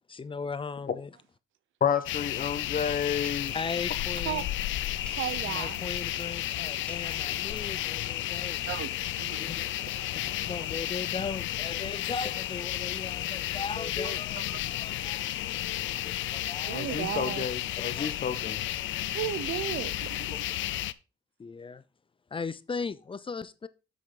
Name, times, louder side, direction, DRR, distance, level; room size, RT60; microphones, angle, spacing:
voice 1, 0.1-1.1 3.5-4.5 5.4-8.6 9.1-9.9 10.2-15.2 16.0-16.8 18.0-18.1 20.3-20.4 21.4-21.8 22.3-23.7, left 4 dB, 25° left, 0.6 m, -38 dB
voice 2, 1.8-3.5 16.7-18.6, left 7 dB, 45° left, 1.2 m, -30 dB
sound 1, 2.0-20.9, left 14 dB, 75° left, 0.5 m, -33 dB
sound 2, 2.6-7.8, left 1 dB, 5° left, 1.4 m, -50 dB
voice 3, 5.0-5.8 8.7-8.9 9.2-9.9 14.0-14.2 16.7-17.4 19.1-20.3, right 11 dB, 80° right, 0.8 m, -35 dB
8.7 x 6.1 x 3.9 m
cardioid pair, 90°, 20 cm